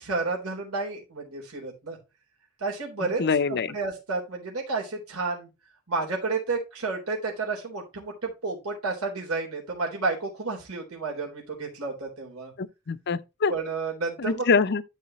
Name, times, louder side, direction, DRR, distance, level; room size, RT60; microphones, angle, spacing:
voice 1, 0.0-2.0 2.6-3.2 3.5-5.5 5.9-12.5 13.5-14.5, right 3 dB, 80° right, 3.6 m, -31 dB
voice 2, 3.2-3.7 12.6-13.5 14.2-14.8, left 5 dB, 50° left, 0.6 m, -24 dB
12.5 x 5.0 x 3.0 m
head